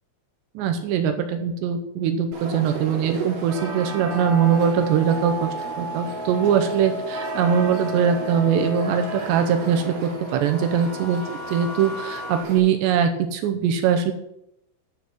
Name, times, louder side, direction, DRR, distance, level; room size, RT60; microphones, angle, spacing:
voice 1, 0.6-5.5 5.8-11.2 11.5-14.1, right 7 dB, 80° right, 6 dB, 2.6 m, -22 dB
sound 1, 2.3-12.6, right 5 dB, 50° right, 3.5 m, -35 dB
sound 2, 4.0-12.4, left 1 dB, 85° left, 1.0 m, -34 dB
11.0 x 7.1 x 6.1 m, 0.80 s
omnidirectional pair, 5.9 m